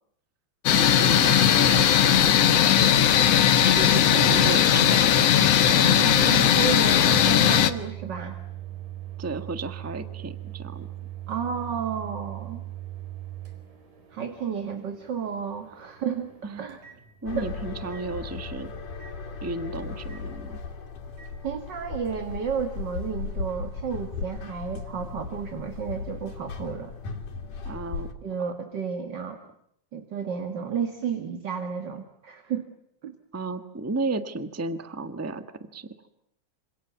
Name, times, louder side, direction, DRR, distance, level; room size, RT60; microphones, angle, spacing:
sound 1, 0.7-7.7, left 9 dB, 60° left, 2.1 m, -18 dB
voice 1, 0.7-2.7 3.1-3.2 3.6-6.0 9.2-10.9 16.4-16.7 17.2-18.7 19.4-20.6 27.6-28.1 33.3-35.4 35.7-35.9, right 3 dB, 20° right, 9 dB, 0.4 m, -33 dB
Microwave oven, 4.9-17.5 17.9-18.1 19.0-19.2 20.1-20.3 21.2-21.3, right 13 dB, 85° right, 6.0 m, -41 dB
voice 2, 5.8-8.4 11.3-12.6 14.1-16.3 16.6-16.8 17.3-17.5 21.4-26.9 28.2-29.4 29.9-32.7 33.0-33.2, right 6 dB, 40° right, 6 dB, 2.1 m, -32 dB
sound 2, 17.3-28.1, left 4 dB, 80° left, 4.4 m, -36 dB
27.5 x 27.5 x 7.2 m, 0.73 s
omnidirectional pair, 3.6 m